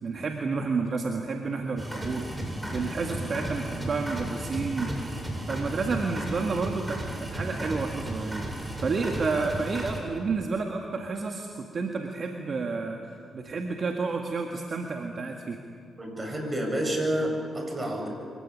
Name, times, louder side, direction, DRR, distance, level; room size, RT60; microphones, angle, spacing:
voice 1, 0.0-4.9 5.2-8.4 8.8-15.6, right 4 dB, 55° right, 2 dB, 1.9 m, -30 dB
sound 1, 1.8-10.0, right 1 dB, 15° right, 7.8 m, -34 dB
voice 2, 16.0-18.1, right 1 dB, 30° right, 2 dB, 7.9 m, -29 dB
24.5 x 16.5 x 9.9 m, 2.3 s
supercardioid pair, 50°, 0 cm